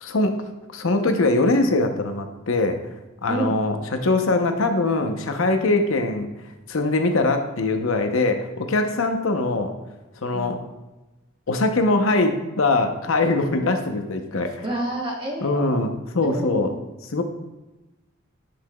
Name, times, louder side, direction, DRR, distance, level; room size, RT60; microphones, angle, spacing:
voice 1, 0.0-0.4 0.7-2.8 3.2-6.3 6.7-9.7 10.2-10.6 11.5-14.6 15.4-16.7 17.1-17.2, left 2 dB, 75° left, 6 dB, 0.8 m, -22 dB
voice 2, 14.6-15.9 16.2-16.8, right 1 dB, 25° right, -1 dB, 0.9 m, -29 dB
10.5 x 5.8 x 2.3 m, 1.1 s
head